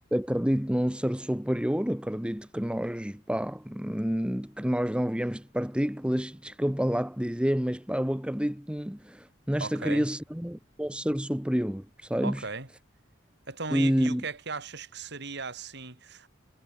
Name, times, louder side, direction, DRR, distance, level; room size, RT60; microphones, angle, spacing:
voice 1, 0.1-12.4 13.7-14.2, equal, 5° right, 1.1 m, -28 dB
voice 2, 9.6-10.1 12.2-12.7 13.5-16.3, right 4 dB, 60° right, 4.6 m, -37 dB
head